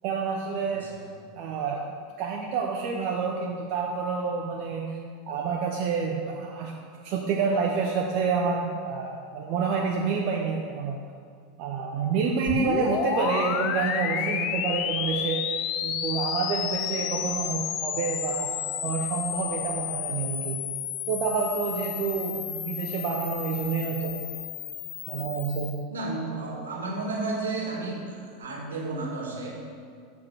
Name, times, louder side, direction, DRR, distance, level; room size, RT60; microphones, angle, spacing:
voice 1, 0.0-0.9 1.3-1.8 2.2-5.0 5.3-6.7 7.0-11.0 11.6-15.4 15.8-20.6 21.1-24.1 25.1-25.8, right 5 dB, 50° right, -1 dB, 0.7 m, -28 dB
voice 2, 0.6-1.1 25.9-29.5, right 3 dB, 70° right, -1 dB, 1.5 m, -32 dB
sound 1, 12.5-25.8, left 9 dB, 45° left, 0.5 m, -31 dB
7.4 x 4.8 x 6.0 m, 2.2 s
figure-of-eight pair, 80°, 0 cm